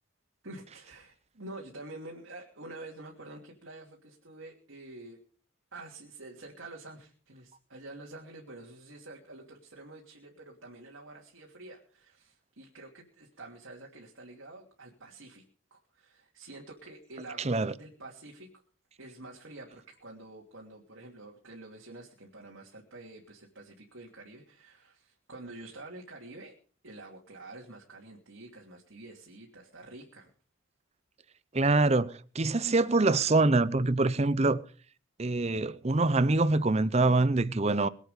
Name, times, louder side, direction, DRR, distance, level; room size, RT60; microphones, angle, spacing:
voice 1, 0.4-5.2 5.7-15.4 15.7-18.5 19.0-26.5 26.8-30.3, right 2 dB, 85° right, 2.9 m, -48 dB
voice 2, 17.4-17.7 31.5-34.6 35.2-37.9, right 3 dB, 30° right, 0.6 m, -25 dB
23.0 x 8.3 x 5.1 m
head